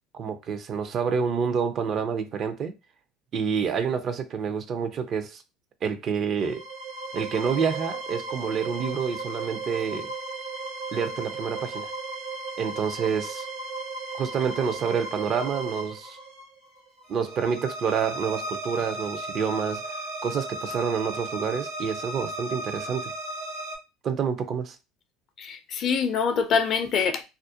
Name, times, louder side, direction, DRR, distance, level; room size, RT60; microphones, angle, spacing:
voice 1, 0.1-2.7 3.3-5.4 5.8-6.6 7.1-10.1 10.9-11.9 12.6-13.5 14.2-16.2 17.1-20.0 20.2-23.1 24.0-24.8, right 6 dB, 45° right, 0.5 m, -28 dB
sound 1, 6.4-23.8, right 2 dB, 85° right, 1.2 m, -35 dB
voice 2, 25.4-27.2, left 6 dB, 50° left, 0.5 m, -25 dB
2.4 x 2.1 x 2.7 m
supercardioid pair, 90°, 0 cm